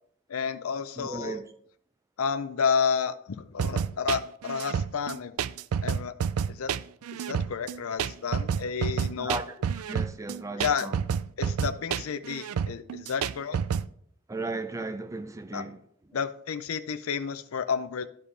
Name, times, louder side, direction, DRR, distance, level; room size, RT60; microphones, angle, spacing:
voice 1, 0.3-1.4 2.2-5.3 5.8-6.1 6.5-6.7 7.1-9.4 10.6-10.9 11.4-13.6 15.5-15.6 16.1-18.1, left 6 dB, 75° left, 0.5 m, -31 dB
voice 2, 1.0-1.5 9.2-11.0 14.3-15.8 16.1-16.2, right 2 dB, 15° right, 0.4 m, -36 dB
sound 1, 3.6-13.9, right 7 dB, 90° right, 0.3 m, -29 dB
13.0 x 5.0 x 3.3 m
head